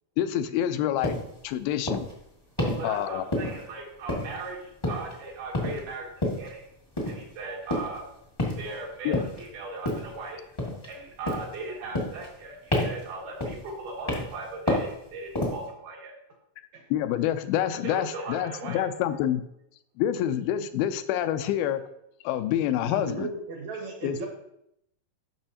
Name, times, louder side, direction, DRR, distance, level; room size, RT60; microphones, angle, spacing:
voice 1, 0.2-1.2 1.4-2.1 2.8-3.2 9.1-9.2 16.9-19.4 20.0-21.8 22.2-23.3 24.0-24.3, left 11 dB, 85° left, 10 dB, 2.4 m, -27 dB
sound 1, 1.0-1.3 1.9-2.1 2.6-2.9 3.3-3.7 4.1-4.5 4.8-5.2 5.5-5.8 6.2-6.5 7.0-7.2 7.7-8.0 8.4-8.7 9.1-9.4 9.8-10.2 10.6-11.0 11.3-11.6 11.9-12.4 12.7-13.1 13.4-13.7 14.1-14.4 14.7-15.0 15.3-15.7, left 1 dB, 25° left, 0.6 m, -29 dB
voice 2, 2.6-6.1 6.4-6.7 7.0-8.1 8.6-10.4 10.8-16.1 17.8-18.9, right 3 dB, 85° right, -3 dB, 3.9 m, -38 dB
voice 3, 22.9-24.3, right 3 dB, 65° right, 2 dB, 1.8 m, -35 dB
12.0 x 6.1 x 2.8 m, 0.78 s
omnidirectional pair, 4.3 m